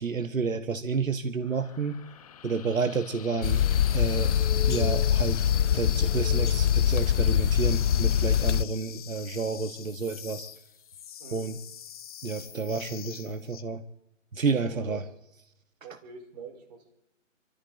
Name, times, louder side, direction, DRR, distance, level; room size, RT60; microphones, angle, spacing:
voice 1, 0.0-2.0 2.4-3.6 3.9-4.3 4.7-5.4 5.7-10.5 11.3-11.6 12.2-13.8 14.3-15.0, right 4 dB, 85° right, 10 dB, 1.5 m, -30 dB
sound 1, 1.4-13.6, left 9 dB, 30° left, 1.0 m, -45 dB
sound 2, 3.4-8.6, left 9 dB, 65° left, 0.6 m, -23 dB
voice 2, 14.6-15.1 15.8-16.9, right 5 dB, 30° right, 3 dB, 4.3 m, -45 dB
26.0 x 14.0 x 3.9 m, 0.85 s
figure-of-eight pair, 150°, 39 cm